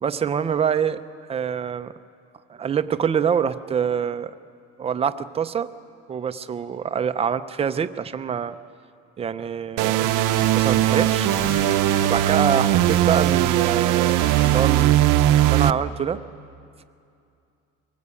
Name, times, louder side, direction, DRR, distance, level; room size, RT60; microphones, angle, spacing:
voice 1, 0.0-1.0 1.3-1.9 2.5-4.3 4.8-5.7 6.1-8.6 9.2-11.3 12.0-15.1 15.4-16.2, right 7 dB, 20° right, 11 dB, 0.5 m, -25 dB
sound 1, 9.8-15.7, right 13 dB, 75° right, 0.7 m, -19 dB
sound 2, 10.0-14.8, left 1 dB, 60° left, 5.6 m, -36 dB
23.0 x 19.0 x 8.3 m, 2.5 s
cardioid pair, 165°, 32 cm